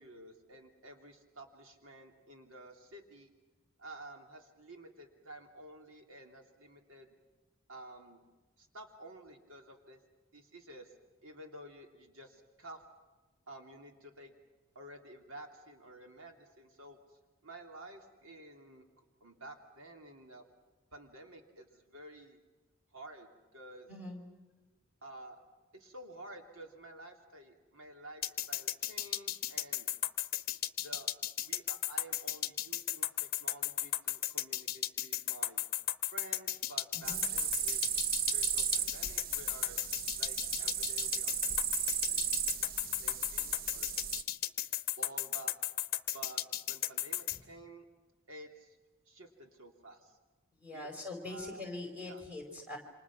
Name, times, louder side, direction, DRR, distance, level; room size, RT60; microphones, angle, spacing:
voice 1, 0.0-3.3 3.8-7.1 7.7-8.2 8.6-10.0 10.3-10.9 11.2-12.8 13.5-14.3 14.7-18.9 19.2-20.4 20.9-22.4 22.9-23.9 25.0-25.4 25.7-29.9 30.8-31.1 31.4-35.6 36.1-37.9 38.3-39.8 40.2-42.4 43.0-43.9 45.0-45.5 46.1-47.9 48.3-48.8 49.1-50.2 50.7-50.9 51.2-51.6 52.1-52.2, right 1 dB, 70° right, 3 dB, 2.9 m, -52 dB
voice 2, 23.9-24.2 36.9-37.2 50.6-52.8, left 2 dB, 5° right, 1 dB, 4.6 m, -43 dB
sound 1, 28.2-47.4, left 13 dB, 45° left, 1.0 m, -34 dB
sound 2, 37.0-44.2, right 9 dB, 40° right, 0.7 m, -35 dB
29.0 x 26.5 x 6.0 m, 1.2 s
head